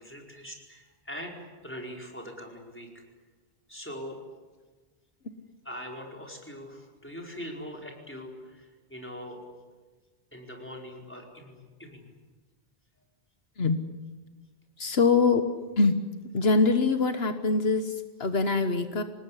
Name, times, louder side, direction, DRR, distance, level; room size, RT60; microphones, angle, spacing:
voice 1, 0.0-2.9 3.7-4.2 5.6-9.4 10.3-12.1, equal, 10° left, 0 dB, 4.8 m, -42 dB
voice 2, 14.8-15.4 15.8-16.0 16.3-19.0, left 4 dB, 75° left, 8 dB, 1.5 m, -23 dB
26.5 x 19.5 x 9.9 m, 1.4 s
omnidirectional pair, 1.0 m